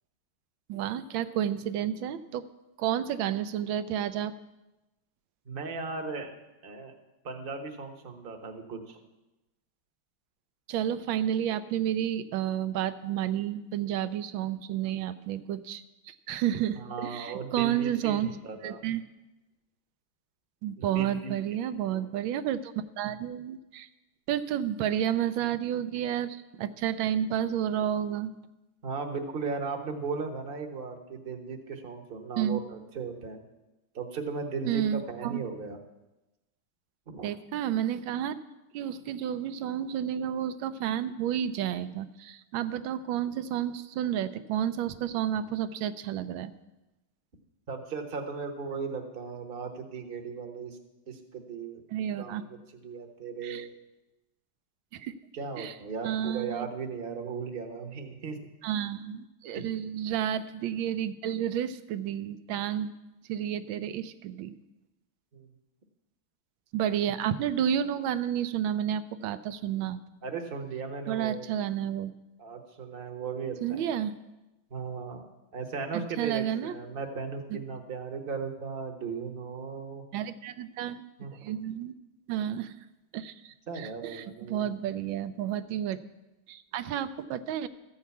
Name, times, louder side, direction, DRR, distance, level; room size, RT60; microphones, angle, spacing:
voice 1, 0.7-2.4 2.8-4.3 10.7-18.3 18.6-19.0 20.6-23.9 24.3-28.3 32.4-32.6 34.6-35.4 37.2-38.4 38.7-46.5 51.9-52.4 53.4-53.7 54.9-55.1 55.6-55.7 56.0-56.7 58.6-62.9 63.3-64.6 66.7-70.0 71.1-72.1 73.6-74.2 76.2-76.8 77.5-77.6 80.1-81.0 81.4-81.9 82.3-82.7 83.1-86.0 86.5-87.7, right 10 dB, 85° right, 12 dB, 1.4 m, -31 dB
voice 2, 5.5-6.3 6.6-6.9 7.2-9.0 16.9-18.2 18.4-18.8 20.8-21.3 21.9-22.0 28.8-33.4 33.9-35.8 37.1-37.3 47.7-50.8 51.1-51.8 52.2-52.6 52.8-53.7 55.3-58.4 59.5-59.7 65.3-65.5 70.2-71.4 72.4-73.8 74.7-75.2 75.5-80.0 81.2-81.4 83.7-84.7, right 5 dB, 35° right, 4 dB, 1.1 m, -36 dB
14.0 x 5.7 x 8.2 m, 1.0 s
omnidirectional pair, 2.1 m